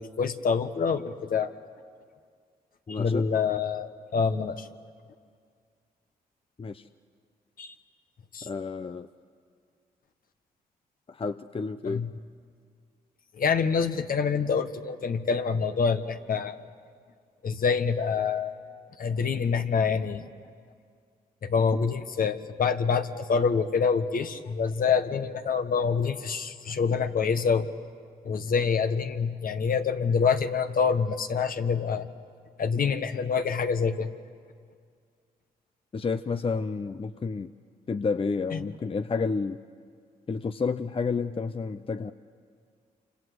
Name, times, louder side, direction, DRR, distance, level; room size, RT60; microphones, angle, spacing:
voice 1, 0.0-1.5 2.9-4.7 7.6-7.7 8.3-8.5 11.8-12.1 13.4-16.6 17.4-18.5 19.0-20.3 21.4-27.7 28.2-32.1 32.6-34.1, left 5 dB, 60° left, 8 dB, 1.5 m, -26 dB
voice 2, 2.9-3.2 6.6-6.9 8.4-9.1 11.1-12.0 35.9-37.5 37.9-39.6 40.3-42.1, left 4 dB, 35° left, 10 dB, 0.8 m, -30 dB
28.0 x 26.5 x 8.0 m, 2.1 s
supercardioid pair, 55°, 17 cm